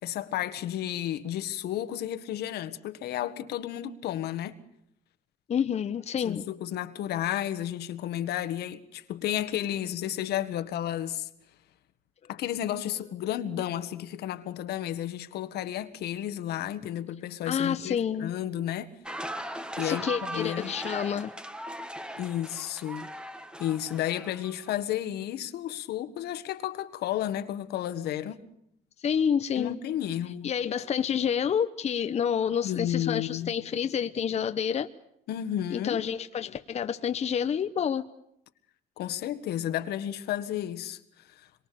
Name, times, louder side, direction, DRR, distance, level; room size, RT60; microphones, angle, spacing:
voice 1, 0.0-4.6 6.3-11.3 12.3-18.9 19.8-20.7 22.2-23.1 23.6-28.4 29.6-30.5 32.6-33.5 35.3-36.0 39.0-41.0 41.3-41.5, left 11 dB, 75° left, 1.7 m, -32 dB
voice 2, 5.5-6.4 17.5-18.3 19.8-21.3 29.0-29.8 30.4-34.9 35.7-38.1, left 8 dB, 40° left, 0.9 m, -28 dB
sound 1, 19.0-24.7, right 1 dB, 5° right, 1.5 m, -38 dB
26.0 x 23.5 x 6.9 m
cardioid pair, 110°, 17 cm